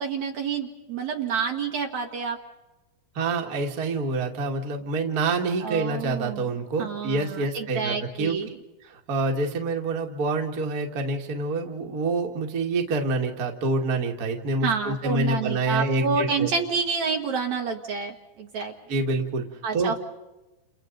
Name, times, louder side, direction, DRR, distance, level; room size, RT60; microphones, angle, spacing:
voice 1, 0.0-2.4 5.6-6.5 6.8-8.6 14.6-18.7 19.6-20.0, right 5 dB, 65° right, 2 dB, 2.3 m, -28 dB
voice 2, 3.2-8.4 8.8-16.5 18.9-19.5 19.7-20.0, right 3 dB, 35° right, 2 dB, 1.8 m, -27 dB
30.0 x 29.5 x 4.0 m, 1.1 s
omnidirectional pair, 4.1 m